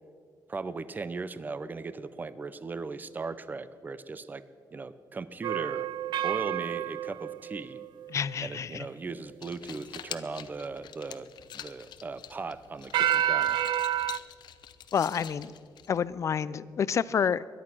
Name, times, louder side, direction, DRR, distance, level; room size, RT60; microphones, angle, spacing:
voice 1, 0.5-4.4 4.7-5.9 6.2-7.8 8.4-11.3 11.5-13.6, right 4 dB, 25° right, 15 dB, 0.6 m, -38 dB
sound 1, 5.4-8.3 12.9-14.2, right 11 dB, 85° right, 0.4 m, -29 dB
voice 2, 8.1-8.9 14.9-15.5 15.9-17.5, left 7 dB, 40° left, 18 dB, 0.4 m, -28 dB
sound 2, 9.2-16.3, left 10 dB, 75° left, 0.8 m, -46 dB
21.5 x 11.0 x 6.1 m, 2.2 s
wide cardioid pair, 150°, 7 cm